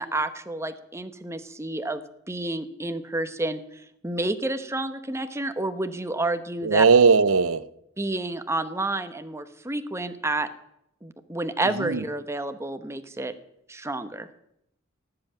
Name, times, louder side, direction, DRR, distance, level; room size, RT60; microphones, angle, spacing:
voice 1, 0.0-6.9 8.0-10.5 11.0-13.3 13.7-14.3, right 2 dB, 15° right, 1.0 m, -30 dB
voice 2, 6.6-7.7 11.8-12.0, right 5 dB, 85° right, 0.7 m, -18 dB
18.0 x 7.8 x 9.0 m
head